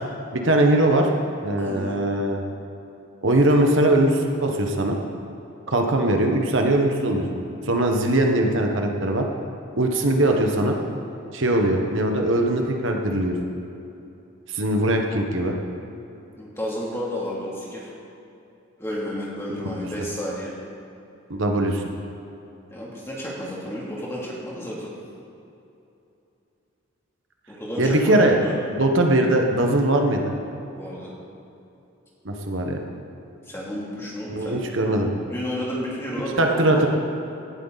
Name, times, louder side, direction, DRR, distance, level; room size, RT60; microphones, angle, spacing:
voice 1, 0.3-1.1 1.4-2.4 3.2-5.0 5.7-9.2 9.8-10.8 11.3-13.4 14.5-15.5 21.3-21.8 27.8-28.4 28.8-30.3 32.2-32.8 34.3-35.1 36.4-36.9, right 1 dB, 65° right, 2 dB, 1.3 m, -21 dB
voice 2, 1.6-2.0 16.4-17.9 18.8-20.5 22.7-24.9 27.5-28.5 30.7-31.1 33.5-34.6 35.0-36.9, equal, 10° left, -6 dB, 2.8 m, -32 dB
18.0 x 12.0 x 4.1 m, 2.8 s
head